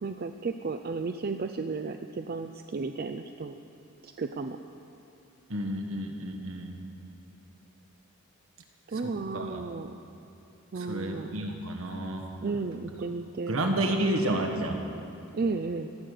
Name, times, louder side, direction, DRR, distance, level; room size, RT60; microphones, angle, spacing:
voice 1, 0.0-3.6 4.0-4.6 8.9-9.9 10.7-11.6 12.4-13.6 15.3-15.9, right 4 dB, 40° right, 7 dB, 0.4 m, -33 dB
voice 2, 5.5-6.7 8.9-9.6 10.7-12.2 13.5-14.8, right 1 dB, 70° right, 3 dB, 1.3 m, -30 dB
17.5 x 7.7 x 6.5 m, 2.9 s
head